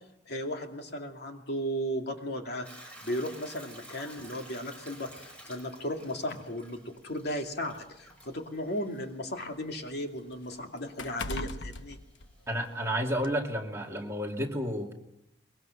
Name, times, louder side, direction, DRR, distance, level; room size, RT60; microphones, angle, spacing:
voice 1, 0.3-12.0, equal, 60° left, 3 dB, 2.6 m, -36 dB
Hiss / Toilet flush / Trickle dribble, 2.6-12.9, right 1 dB, 5° left, 6.0 m, -53 dB
sound 1, 4.2-4.4 5.4-5.5 6.0-6.1 7.0-9.0 9.4-12.8 13.2-13.4, left 2 dB, 90° left, 1.0 m, -41 dB
voice 2, 12.5-14.9, equal, 15° right, 1 dB, 2.5 m, -31 dB
23.5 x 22.0 x 6.6 m, 0.85 s
head